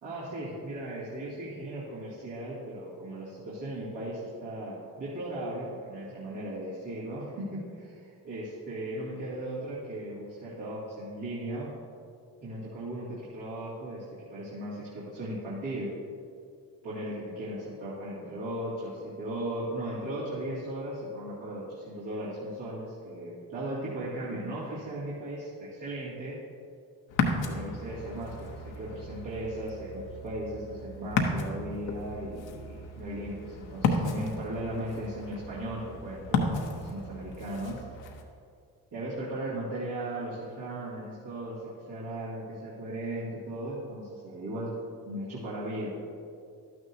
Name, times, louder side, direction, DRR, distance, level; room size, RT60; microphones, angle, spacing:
voice 1, 0.0-11.7 12.4-15.9 16.8-26.4 27.4-37.8 38.9-44.7 45.1-45.9, right 1 dB, 80° right, -10 dB, 2.5 m, -37 dB
Ocean, 27.1-38.2, left 3 dB, 85° left, 1.0 m, -34 dB
12.0 x 9.4 x 2.8 m, 2.3 s
supercardioid pair, 50°, 43 cm